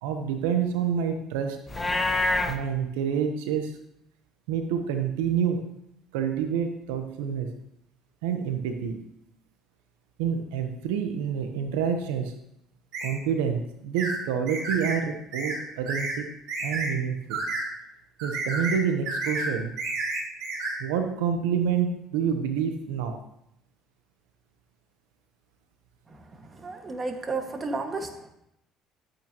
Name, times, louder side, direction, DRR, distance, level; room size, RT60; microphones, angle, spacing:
voice 1, 0.0-1.6 2.5-3.8 4.5-5.6 6.1-7.5 8.2-9.0 10.2-12.3 13.0-16.3 16.6-17.4 18.2-19.7 20.8-23.2, right 7 dB, 90° right, 6 dB, 0.9 m, -28 dB
Livestock farm animals working animals, 1.7-2.6, left 2 dB, 20° left, 1.3 m, -25 dB
sound 1, 12.9-13.1 14.0-14.2 14.5-15.0 15.3-15.6 15.9-16.2 16.5-16.9 17.3-17.6 18.2-18.8 19.1-19.5 19.8-20.7, right 3 dB, 70° right, 4.0 m, -30 dB
voice 2, 26.5-28.3, right 3 dB, 30° right, 4 dB, 1.8 m, -32 dB
13.0 x 9.1 x 3.0 m, 0.79 s
supercardioid pair, 80°, 0 cm